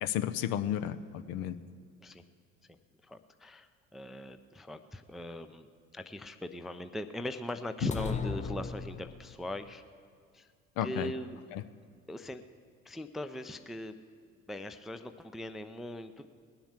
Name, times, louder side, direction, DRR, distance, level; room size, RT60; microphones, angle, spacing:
voice 1, 0.0-1.6 7.8-7.9 10.8-11.1 11.5-11.6, left 11 dB, 55° left, 12 dB, 0.8 m, -32 dB
voice 2, 3.0-9.8 10.3-10.5 10.8-11.4 12.1-12.4 12.8-14.0 14.5-16.3, left 1 dB, ahead, 9 dB, 0.4 m, -40 dB
sound 1, 7.9-9.5, left 6 dB, 15° left, 0.8 m, -36 dB
20.0 x 7.1 x 7.3 m, 2.1 s
figure-of-eight pair, 65°, 40 cm